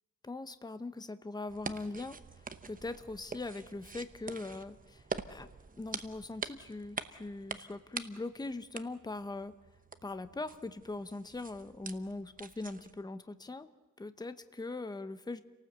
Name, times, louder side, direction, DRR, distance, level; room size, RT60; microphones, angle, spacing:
voice 1, 0.2-5.5 5.8-9.5 10.0-13.7 14.0-15.4, left 2 dB, 10° left, 11 dB, 0.8 m, -41 dB
sound 1, 1.5-13.0, right 4 dB, 25° right, 0.9 m, -45 dB
29.5 x 18.5 x 8.0 m, 1.2 s
wide cardioid pair, 160°, 33 cm